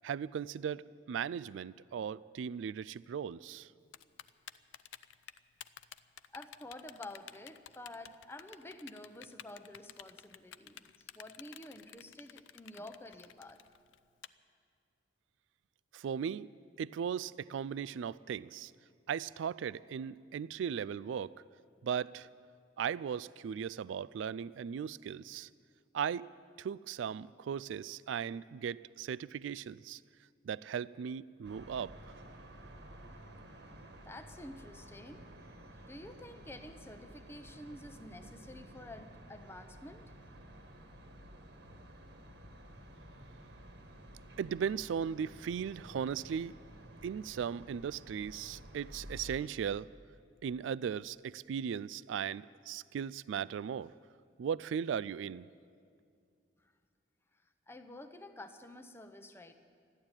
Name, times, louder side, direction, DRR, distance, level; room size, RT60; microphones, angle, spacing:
voice 1, 0.0-3.7 15.9-16.5 16.8-18.7 19.1-21.3 21.8-22.3 22.8-25.5 25.9-26.3 26.6-30.0 30.4-32.0 44.4-46.6 47.0-49.9 50.4-53.9 54.4-55.5, right 7 dB, 80° right, 19 dB, 0.3 m, -37 dB
Typing, 3.9-14.3, left 11 dB, 80° left, 0.4 m, -51 dB
voice 2, 6.3-13.6 34.0-35.2 35.7-40.1 57.7-59.5, left 1 dB, 15° left, 8 dB, 0.7 m, -49 dB
sound 1, 31.4-49.4, right 1 dB, 60° right, 1.5 m, -52 dB
13.5 x 11.5 x 8.9 m, 2.3 s
head